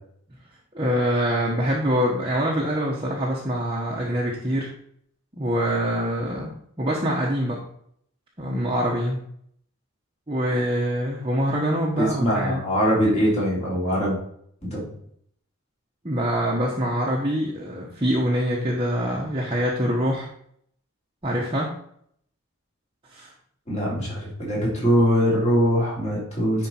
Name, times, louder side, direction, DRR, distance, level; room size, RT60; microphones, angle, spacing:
voice 1, 0.7-4.7 5.4-7.6 8.4-9.2 10.3-12.6 16.0-20.3 21.2-21.8 23.1-23.3, equal, 25° right, -4 dB, 1.1 m, -24 dB
voice 2, 12.0-14.2 14.6-14.9 23.7-26.7, equal, 30° left, -7 dB, 3.8 m, -22 dB
10.0 x 4.5 x 4.4 m, 0.67 s
head